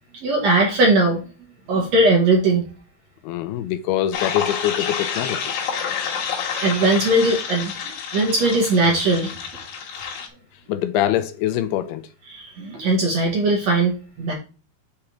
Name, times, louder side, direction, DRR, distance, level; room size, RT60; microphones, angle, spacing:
voice 1, 0.2-1.2 1.7-2.6 6.5-7.7 8.1-9.3 12.3-13.9 14.2-14.3, right 2 dB, 60° right, 2.0 m, -19 dB
voice 2, 3.2-5.5 10.7-12.0, left 12 dB, 80° left, 2.5 m, -24 dB
sound 1, 4.1-10.3, left 7 dB, 65° left, 3.2 m, -29 dB
7.2 x 4.9 x 4.4 m
omnidirectional pair, 4.6 m